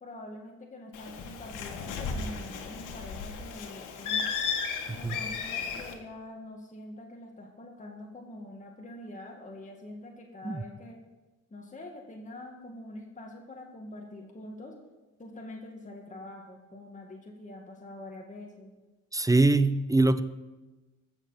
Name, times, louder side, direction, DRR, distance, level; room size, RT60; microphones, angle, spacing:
voice 1, 0.0-4.3 4.9-11.0 11.5-14.7 15.2-18.7, left 1 dB, 25° left, 0 dB, 2.0 m, -45 dB
Bird, 0.9-5.9, left 6 dB, 85° left, 1.6 m, -34 dB
voice 2, 19.1-20.2, right 2 dB, 10° right, 13 dB, 0.6 m, -23 dB
14.5 x 6.9 x 5.8 m, 1.1 s
cardioid pair, 90°, 30 cm